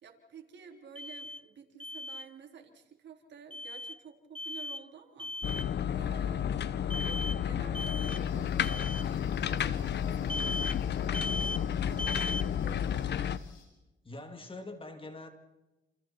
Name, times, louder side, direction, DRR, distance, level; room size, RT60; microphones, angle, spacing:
voice 1, 0.0-5.3 5.9-6.5 6.9-13.2, right 7 dB, 60° right, 3 dB, 3.7 m, -52 dB
Alarm, 0.9-1.4 1.8-2.2 3.5-4.0 4.3-4.8 5.2-5.7 6.9-7.4 7.7-8.2 8.6-9.0 10.3-10.8 11.1-11.6 12.0-12.5, left 2 dB, 5° left, 0.8 m, -37 dB
sound 1, 5.4-13.4, left 9 dB, 60° left, 1.0 m, -31 dB
sound 2, 8.1-13.7, left 7 dB, 85° left, 6.6 m, -59 dB
voice 2, 14.0-15.3, left 2 dB, 25° left, 6 dB, 2.8 m, -44 dB
30.0 x 28.5 x 4.5 m, 1.1 s
cardioid pair, 90°, 20 cm